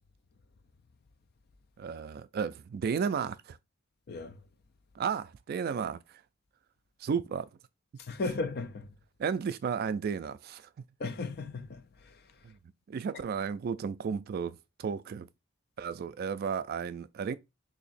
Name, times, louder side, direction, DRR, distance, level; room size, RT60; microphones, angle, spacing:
voice 1, 1.8-3.6 5.0-6.0 7.0-7.5 9.2-10.7 12.4-12.6 12.9-15.3 15.8-17.4, right 6 dB, 50° right, 0.3 m, -33 dB
voice 2, 4.1-4.4 8.0-8.9 11.0-12.3, left 3 dB, 50° left, 0.5 m, -36 dB
2.9 x 2.7 x 4.1 m
head